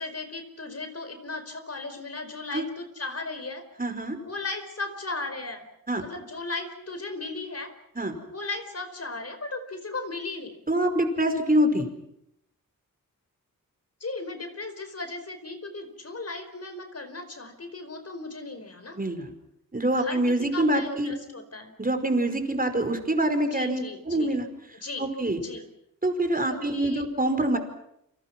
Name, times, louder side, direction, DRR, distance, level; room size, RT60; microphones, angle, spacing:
voice 1, 0.0-3.6 4.2-5.6 6.0-7.7 8.3-10.5 14.0-19.0 20.0-20.2 20.5-21.7 23.5-24.4 24.7-25.6 26.5-27.0, left 3 dB, 45° left, 9 dB, 4.9 m, -36 dB
voice 2, 3.8-4.2 5.9-6.0 8.0-8.1 10.7-11.9 19.0-19.3 19.7-21.1 21.8-24.5 25.0-25.4 26.0-27.6, right 1 dB, 25° right, 7 dB, 5.1 m, -25 dB
29.5 x 26.5 x 6.1 m, 0.78 s
wide cardioid pair, 85°, 34 cm